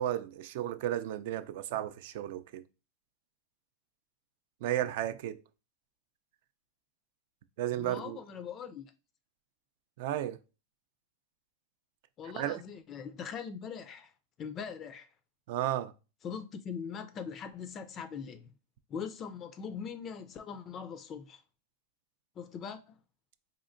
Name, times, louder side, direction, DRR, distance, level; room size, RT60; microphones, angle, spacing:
voice 1, 0.0-2.6 4.6-5.4 7.6-8.2 10.0-10.4 12.3-12.6 15.5-15.9, right 12 dB, 65° right, 0.3 m, -33 dB
voice 2, 7.8-8.9 12.2-14.1 14.4-15.1 16.2-18.5 18.9-21.4 22.4-23.0, left 6 dB, 30° left, 0.3 m, -41 dB
4.2 x 2.8 x 2.5 m
supercardioid pair, 130°, 0 cm